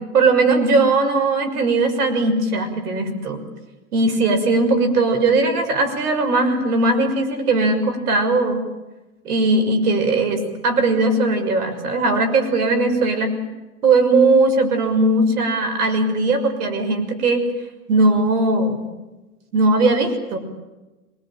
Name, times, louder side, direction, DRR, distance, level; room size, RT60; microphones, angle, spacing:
voice 1, 0.1-3.4 3.9-8.6 9.2-13.3 13.8-17.4 17.9-18.8 19.5-20.4, right 2 dB, 80° right, 7 dB, 6.4 m, -19 dB
25.5 x 21.0 x 9.0 m, 1.1 s
hypercardioid pair, 140°, 45 cm